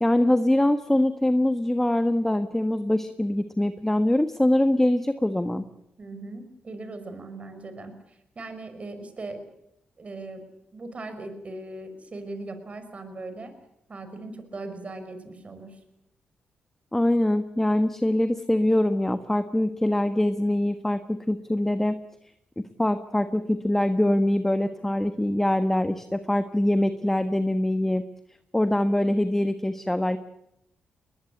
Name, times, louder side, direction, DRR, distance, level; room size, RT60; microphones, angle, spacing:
voice 1, 0.0-5.6 16.9-22.0 22.8-28.0 28.5-30.2, left 1 dB, 10° left, 10 dB, 1.4 m, -23 dB
voice 2, 6.0-9.4 10.0-10.4 10.7-13.5 13.9-15.8, right 2 dB, 40° right, 9 dB, 5.7 m, -39 dB
21.5 x 20.5 x 8.6 m, 0.79 s
cardioid pair, 65°, 3 cm